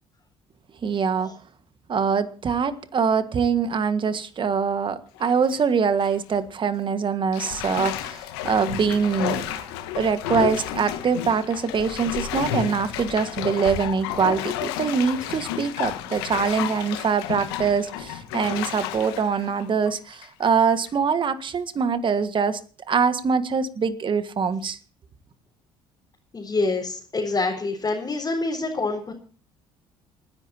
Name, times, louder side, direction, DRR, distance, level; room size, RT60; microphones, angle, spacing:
voice 1, 0.8-1.3 1.9-9.7 10.0-22.6 22.9-24.8, right 6 dB, 40° right, 1.6 m, -24 dB
Bathtub (filling or washing), 5.2-5.6 6.0-6.1 7.3-20.4 20.9-21.0, left 11 dB, 80° left, 1.3 m, -31 dB
voice 2, 26.3-29.1, left 3 dB, 30° left, 4.3 m, -26 dB
28.0 x 10.5 x 2.8 m
hypercardioid pair, 60°, 12 cm